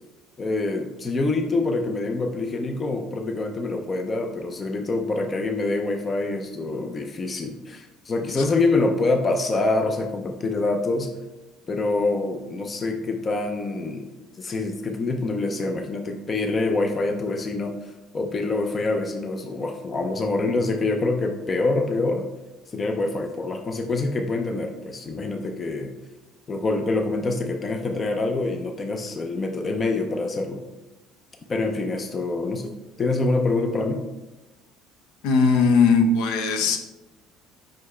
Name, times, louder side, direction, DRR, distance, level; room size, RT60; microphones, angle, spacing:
voice 1, 0.4-11.1 11.7-14.0 14.4-22.3 22.7-25.9 26.5-30.6 31.5-34.0, left 3 dB, 20° left, 4 dB, 0.4 m, -26 dB
voice 2, 35.2-36.8, left 4 dB, 75° left, 5 dB, 0.8 m, -19 dB
5.9 x 5.3 x 3.2 m, 1.0 s
cardioid pair, 175°, 0 cm